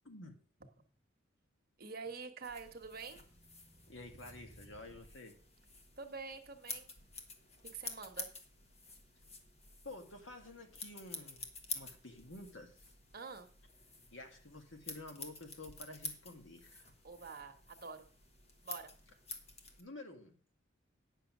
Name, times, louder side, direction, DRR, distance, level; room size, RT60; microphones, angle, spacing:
voice 1, 0.0-0.4 3.9-5.4 9.8-11.5 11.7-12.8 14.1-16.8 19.8-20.4, left 2 dB, 70° left, 4 dB, 1.9 m, -50 dB
voice 2, 1.8-3.2 6.0-6.9 7.7-8.3 13.1-13.5 17.0-18.1 18.6-18.9, right 5 dB, 50° right, 4 dB, 1.3 m, -46 dB
sound 1, 2.3-5.2, right 1 dB, 50° left, 4.4 m, -61 dB
sound 2, 2.4-19.8, left 3 dB, 30° left, 1.4 m, -50 dB
9.7 x 6.4 x 6.1 m, 0.43 s
head